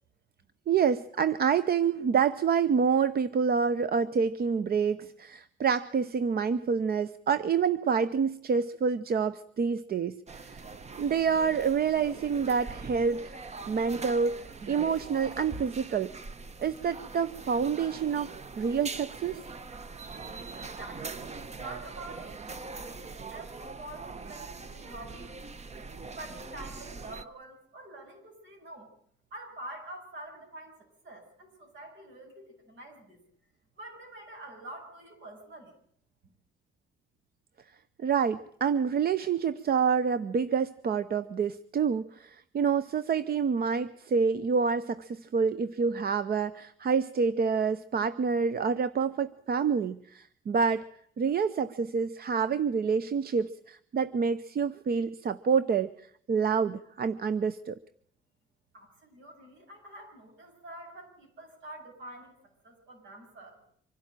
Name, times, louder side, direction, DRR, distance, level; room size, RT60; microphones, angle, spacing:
voice 1, 0.7-10.7 11.0-13.4 13.7-16.1 16.6-19.4 38.0-50.9 51.2-55.9 56.3-57.8, right 6 dB, 50° right, 14 dB, 0.8 m, -27 dB
sound 1, 10.3-27.2, right 4 dB, 35° right, 1.1 m, -42 dB
voice 2, 20.6-25.4 26.2-28.9 29.3-33.2 33.8-35.8 58.7-62.3 62.6-63.6, right 1 dB, 70° right, 3 dB, 7.7 m, -47 dB
25.0 x 12.0 x 9.1 m, 0.64 s
cardioid pair, 90°, 20 cm